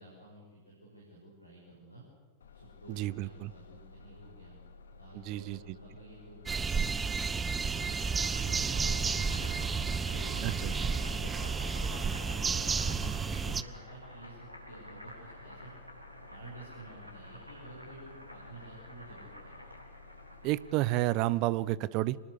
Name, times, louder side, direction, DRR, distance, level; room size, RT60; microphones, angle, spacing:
voice 1, 0.0-2.0 2.5-4.6 5.0-7.8 8.4-9.5 10.1-15.7 16.3-19.5, right 2 dB, 85° left, -2 dB, 6.4 m, -50 dB
Bus, 2.4-20.6, left 3 dB, 70° left, 2.0 m, -54 dB
voice 2, 2.9-3.5 5.1-5.8 10.4-10.7 20.4-22.2, right 17 dB, 40° right, 21 dB, 0.8 m, -31 dB
sound 1, 6.5-13.6, right 5 dB, 15° right, 0.9 m, -31 dB
Boiling, 7.5-21.3, equal, 85° right, 4.2 m, -50 dB
27.0 x 20.0 x 8.4 m, 1.4 s
figure-of-eight pair, 90°, 0 cm